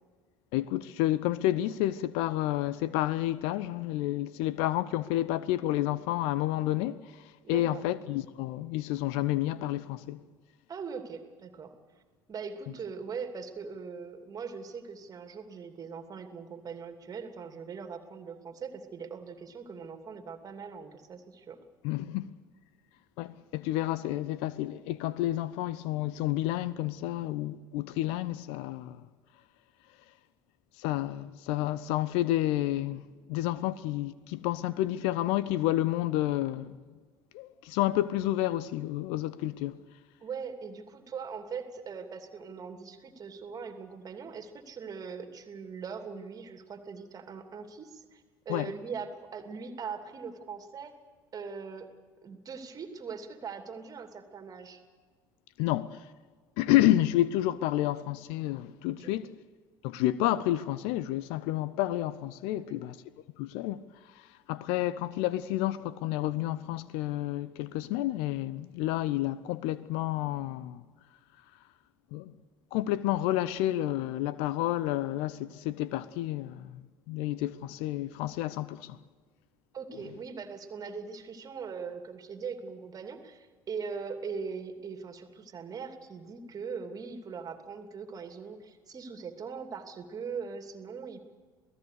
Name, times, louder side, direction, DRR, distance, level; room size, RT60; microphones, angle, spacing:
voice 1, 0.5-7.1 7.5-10.2 21.8-22.3 23.2-29.0 30.8-33.0 33.3-36.8 37.3-39.8 48.5-48.7 55.6-56.0 56.6-59.3 59.8-63.0 63.4-63.8 64.2-70.8 72.1-72.3 72.7-79.0, left 14 dB, 55° left, 0.8 m, -30 dB
voice 2, 7.4-7.8 10.7-11.7 12.3-21.6 40.2-50.9 51.3-51.9 52.2-54.8 59.0-59.1 62.5-62.8 79.7-91.2, right 5 dB, 30° right, 2.7 m, -41 dB
28.0 x 18.5 x 6.7 m
figure-of-eight pair, 60°, 12 cm